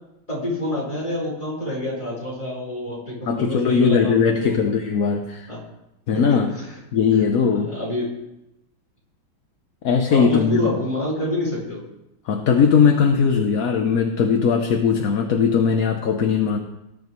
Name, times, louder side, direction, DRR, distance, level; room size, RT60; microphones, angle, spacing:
voice 1, 0.3-4.6 5.5-5.6 6.3-6.4 7.6-8.1 10.1-11.8, left 1 dB, 15° left, -5 dB, 4.7 m, -27 dB
voice 2, 3.2-5.5 6.1-6.5 6.9-7.7 9.8-10.8 12.3-16.6, left 6 dB, 55° left, 4 dB, 1.1 m, -19 dB
19.0 x 10.5 x 3.1 m, 0.90 s
omnidirectional pair, 2.2 m